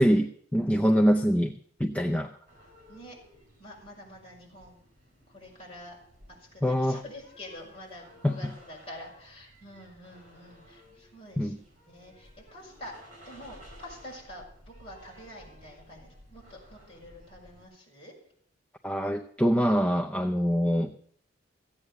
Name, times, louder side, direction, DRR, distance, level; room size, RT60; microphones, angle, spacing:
voice 1, 0.0-2.3 6.6-7.0 8.2-8.4 11.4-11.6 18.8-20.9, equal, 5° left, 5 dB, 0.5 m, -24 dB
sound 1, 2.5-17.7, equal, 40° right, 5.9 m, -55 dB
voice 2, 3.6-4.8 5.3-6.0 6.4-11.6 11.9-12.9 13.3-18.1, left 1 dB, 30° left, -3 dB, 5.8 m, -47 dB
15.5 x 8.8 x 7.0 m, 0.62 s
head